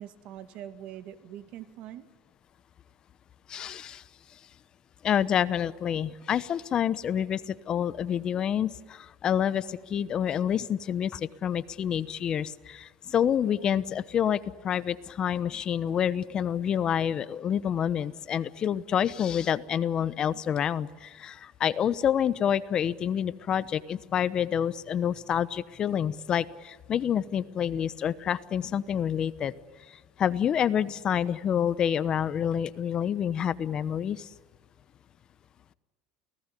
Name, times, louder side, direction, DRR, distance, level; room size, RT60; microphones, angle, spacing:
voice 1, 0.0-2.1, right 11 dB, 55° right, 11 dB, 2.1 m, -43 dB
voice 2, 3.5-4.0 4.3-4.4 5.0-29.5 29.9-34.3, left 9 dB, 35° left, 16 dB, 1.0 m, -28 dB
29.0 x 18.5 x 10.0 m, 1.3 s
supercardioid pair, 125°, 2 cm